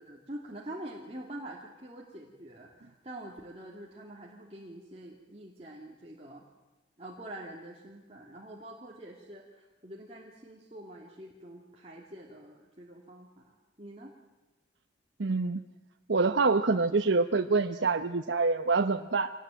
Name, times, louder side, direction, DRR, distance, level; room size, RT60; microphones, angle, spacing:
voice 1, 0.0-6.4 7.0-14.1, right 1 dB, 35° right, -2 dB, 2.8 m, -46 dB
voice 2, 15.2-15.6 16.1-19.3, right 3 dB, 80° right, 7 dB, 0.9 m, -26 dB
25.5 x 19.5 x 9.2 m, 1.1 s
head